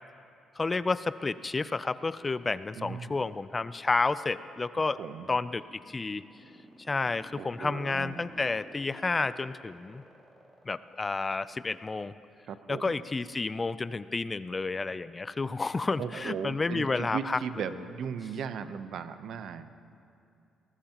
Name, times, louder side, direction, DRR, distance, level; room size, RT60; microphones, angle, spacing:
voice 1, 0.6-5.0 5.3-6.2 6.9-10.0 10.7-12.1 12.7-17.6, left 3 dB, 25° left, 15 dB, 0.4 m, -30 dB
voice 2, 2.7-3.2 5.0-5.3 7.4-8.3 12.5-12.9 16.0-19.8, right 7 dB, 70° right, 11 dB, 0.7 m, -37 dB
sound 1, 5.4-11.7, equal, 5° right, 3.1 m, -52 dB
23.5 x 18.5 x 3.0 m, 2.5 s
cardioid pair, 90°, 0 cm